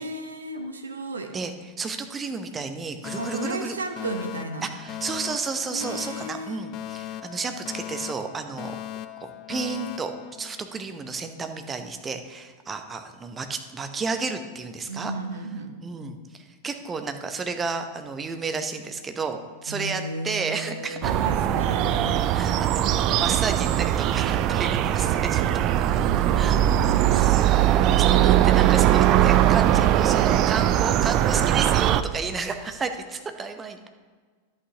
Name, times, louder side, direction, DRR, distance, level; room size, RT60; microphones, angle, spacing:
voice 1, 0.0-1.3 3.2-4.7 5.7-6.6 14.9-15.7 19.7-22.2 26.1-27.3, right 2 dB, 75° right, 5 dB, 0.8 m, -34 dB
voice 2, 1.3-3.8 4.6-8.8 9.2-10.1 10.4-15.1 15.8-21.2 22.3-25.8 26.3-26.6 27.1-33.9, right 4 dB, 20° right, 7 dB, 0.7 m, -32 dB
Alarm, 3.0-11.1, left 12 dB, 35° left, 0.4 m, -38 dB
sound 1, 21.0-32.0, right 12 dB, 40° right, 0.3 m, -20 dB
11.0 x 8.3 x 2.9 m, 1.5 s
figure-of-eight pair, 90°, 0 cm